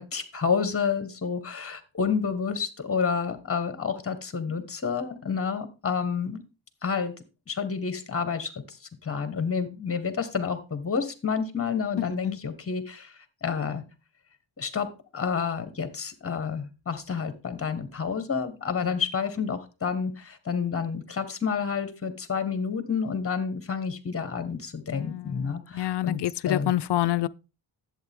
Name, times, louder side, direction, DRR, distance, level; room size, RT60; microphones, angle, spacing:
voice 1, 0.0-6.4 6.8-7.1 7.5-13.8 14.6-26.7, left 6 dB, 30° left, 1.4 m, -29 dB
voice 2, 12.0-12.4 24.9-27.3, left 14 dB, 65° left, 0.5 m, -28 dB
11.0 x 8.0 x 3.6 m
wide cardioid pair, 135°, 46 cm